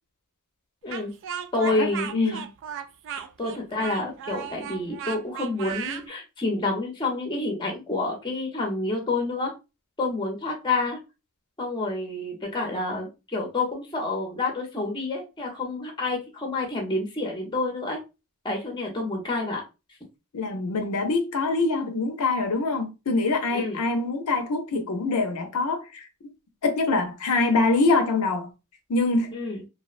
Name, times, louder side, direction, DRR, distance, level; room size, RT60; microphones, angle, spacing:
Speech, 0.9-6.1, right 8 dB, 60° right, 0.3 m, -35 dB
voice 1, 1.5-2.4 3.4-9.5 10.0-11.0 11.6-18.0 18.4-19.6 23.5-23.8 29.3-29.6, left 2 dB, 20° left, 0.6 m, -28 dB
voice 2, 2.1-2.4 20.3-26.3 26.6-28.5 28.9-29.4, left 3 dB, 75° left, 0.6 m, -24 dB
2.7 x 2.0 x 2.4 m
head